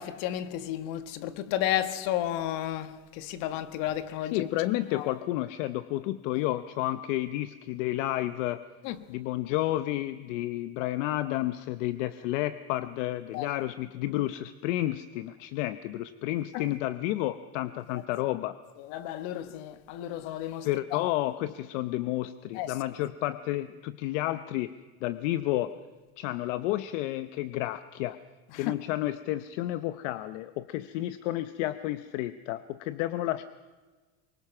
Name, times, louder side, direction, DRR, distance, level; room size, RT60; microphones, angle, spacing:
voice 1, 0.0-4.5 4.9-5.1 8.8-9.0 13.3-13.5 16.5-16.6 18.8-21.1 22.5-22.8 28.5-28.7, left 12 dB, 65° left, 1.6 m, -33 dB
voice 2, 4.3-8.6 9.1-18.5 20.6-24.7 25.0-25.7 26.2-28.2 28.5-33.4, left 15 dB, 80° left, 0.9 m, -31 dB
24.0 x 21.0 x 6.0 m
cardioid pair, 145°, 36 cm